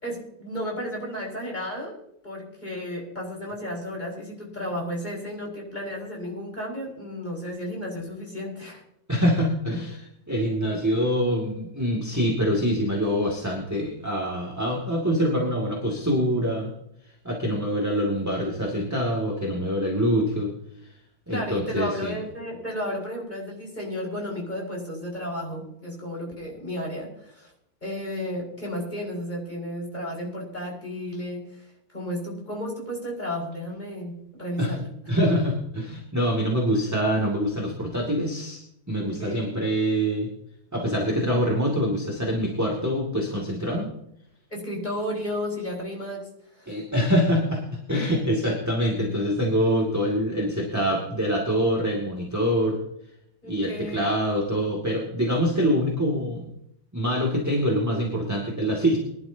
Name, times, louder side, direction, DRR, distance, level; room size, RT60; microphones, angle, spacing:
voice 1, 0.0-1.9 2.2-8.8 21.3-27.5 27.8-34.8 39.0-39.6 44.5-46.3 46.6-46.7 53.4-54.1, equal, 20° left, -3 dB, 5.3 m, -33 dB
voice 2, 9.1-16.7 17.2-20.5 21.3-22.2 34.6-34.7 35.1-38.6 38.9-40.3 40.7-43.9 46.7-52.8 53.4-56.5 56.9-59.0, equal, 10° right, -2 dB, 2.2 m, -25 dB
22.5 x 11.5 x 2.8 m, 0.76 s
omnidirectional pair, 2.3 m